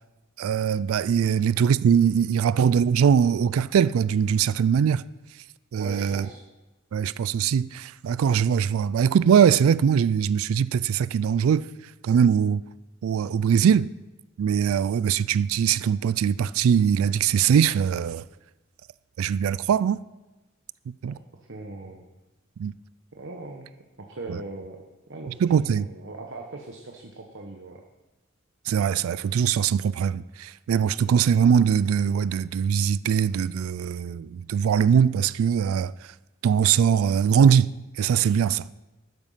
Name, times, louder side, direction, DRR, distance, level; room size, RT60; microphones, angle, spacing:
voice 1, 0.4-5.0 5.7-6.3 6.9-11.7 12.0-12.6 13.0-13.9 14.4-18.2 19.2-20.0 21.0-21.2 22.6-22.7 24.3-24.4 25.4-25.9 28.7-35.9 36.4-37.7 38.0-38.7, right 7 dB, 90° right, 0.3 m, -21 dB
voice 2, 5.8-6.4 21.0-21.1 21.5-22.0 23.1-24.8 25.1-27.8, right 3 dB, 60° right, 1.1 m, -39 dB
12.5 x 9.4 x 5.7 m
head